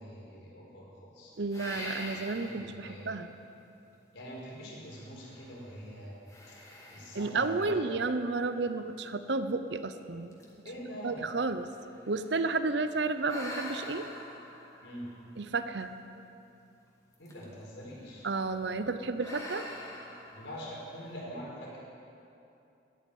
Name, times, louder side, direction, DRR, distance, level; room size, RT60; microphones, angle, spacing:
voice 1, 0.0-1.3 2.1-3.1 4.1-6.1 6.5-6.6 6.9-7.8 10.6-11.2 14.8-15.1 17.2-18.3 20.3-21.8, equal, 75° left, -4 dB, 4.6 m, -44 dB
voice 2, 1.4-3.3 7.1-10.4 11.0-11.7 12.1-14.1 15.4-15.9 18.2-19.7, right 3 dB, 65° right, 10 dB, 0.7 m, -32 dB
sound 1, 1.5-2.8 3.4-3.5 4.9-5.7 6.3-8.6 9.3-9.4 9.9-10.0 10.3-12.6 13.2-16.0 17.1-17.7 18.0-18.3 19.2-21.1, left 1 dB, 20° left, 2.1 m, -45 dB
13.5 x 10.5 x 9.4 m, 2.7 s
head